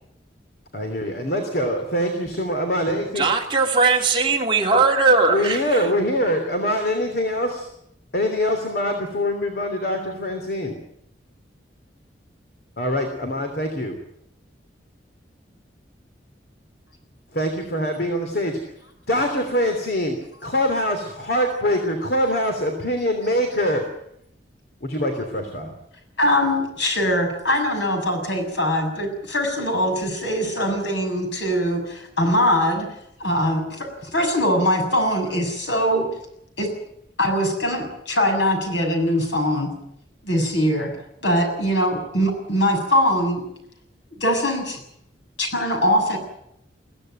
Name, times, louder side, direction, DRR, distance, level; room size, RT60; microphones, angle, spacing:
voice 1, 0.7-3.3 5.3-7.7 8.1-10.8 12.8-14.0 17.3-18.7 19.1-23.8 24.8-25.7, equal, 55° left, 4 dB, 3.2 m, -24 dB
voice 2, 3.2-5.8, right 4 dB, 25° right, 0 dB, 2.9 m, -19 dB
voice 3, 26.2-32.9 33.2-36.1 36.6-36.7 37.2-39.7 40.2-40.9 41.2-43.4 44.2-44.8 45.4-46.2, equal, 80° left, 4 dB, 7.1 m, -22 dB
22.5 x 16.5 x 9.1 m, 0.76 s
head